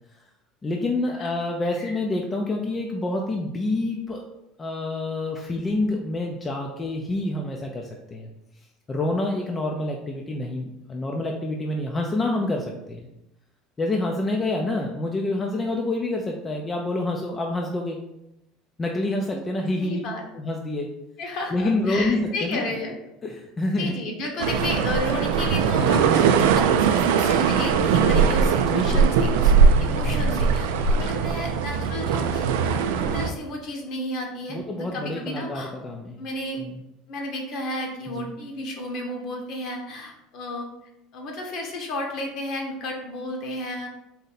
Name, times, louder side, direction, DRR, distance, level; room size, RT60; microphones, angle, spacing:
voice 1, 0.6-4.2 4.6-8.3 8.9-13.1 13.8-18.0 18.8-20.0 20.3-20.9 21.5-22.7 23.2-24.0 25.8-26.0 28.7-29.1 34.5-36.2 36.6-36.8 38.2-38.3, left 2 dB, 20° left, 1 dB, 0.4 m, -27 dB
voice 2, 19.3-20.2 21.2-22.9 23.8-29.5 29.8-35.7 36.2-36.6 37.1-40.7 41.1-43.9, left 1 dB, 55° left, 1 dB, 1.1 m, -33 dB
sound 1, 24.4-33.3, right 6 dB, 90° right, 0.3 m, -20 dB
4.1 x 2.6 x 4.0 m, 0.87 s
supercardioid pair, 125°, 0 cm